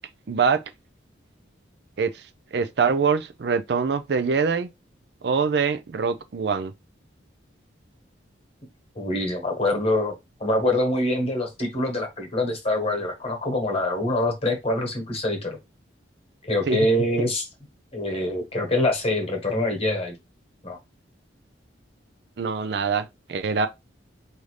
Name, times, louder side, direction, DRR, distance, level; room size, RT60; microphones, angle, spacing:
voice 1, 0.3-0.6 2.0-2.1 2.5-4.7 5.2-6.7 16.7-16.8 17.2-17.3 22.4-23.7, right 5 dB, 60° right, 0.4 m, -24 dB
voice 2, 8.9-10.1 10.4-15.6 16.4-17.5 17.9-20.1 20.6-20.8, left 1 dB, 30° left, 1.3 m, -25 dB
5.0 x 2.7 x 3.2 m
head